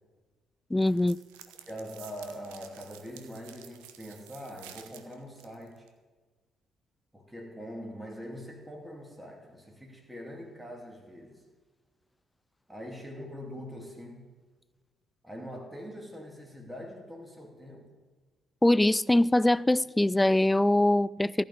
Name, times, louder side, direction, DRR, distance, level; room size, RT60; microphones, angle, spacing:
voice 1, 0.7-1.2 18.6-21.4, left 1 dB, 10° left, 0.3 m, -23 dB
sound 1, 0.8-5.9, right 11 dB, 70° right, 0.8 m, -51 dB
voice 2, 1.6-5.9 7.1-11.4 12.7-14.3 15.2-17.9, equal, 5° right, 2.5 m, -43 dB
15.5 x 5.3 x 9.7 m
figure-of-eight pair, 45°, 0 cm